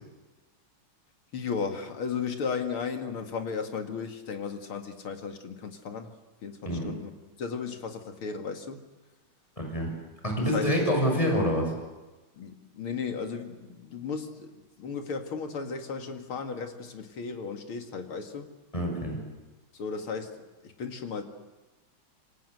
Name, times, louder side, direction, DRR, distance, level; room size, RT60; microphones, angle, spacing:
voice 1, 1.3-6.1 6.4-7.1 7.4-8.8 10.5-10.7 12.4-18.5 19.7-21.2, left 5 dB, 90° left, 6 dB, 3.0 m, -35 dB
voice 2, 9.6-9.9 10.2-11.7 18.7-19.2, equal, 15° left, 2 dB, 6.5 m, -26 dB
27.0 x 25.0 x 8.0 m, 1.2 s
omnidirectional pair, 2.3 m